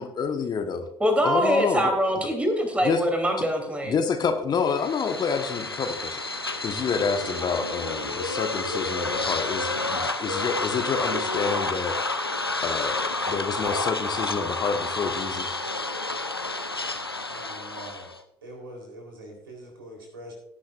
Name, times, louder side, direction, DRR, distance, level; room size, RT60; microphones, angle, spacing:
voice 1, 0.0-0.9 1.2-1.9 2.8-3.0 3.9-12.0 12.6-15.6, left 5 dB, 35° left, 6 dB, 1.2 m, -28 dB
voice 2, 1.0-3.9, equal, 10° right, 3 dB, 3.2 m, -23 dB
sound 1, 4.6-18.2, left 2 dB, 90° left, 0.6 m, -30 dB
voice 3, 17.3-18.1 18.4-20.3, right 1 dB, 75° right, 1 dB, 3.7 m, -43 dB
18.0 x 10.0 x 2.5 m, 0.77 s
figure-of-eight pair, 60°, 12 cm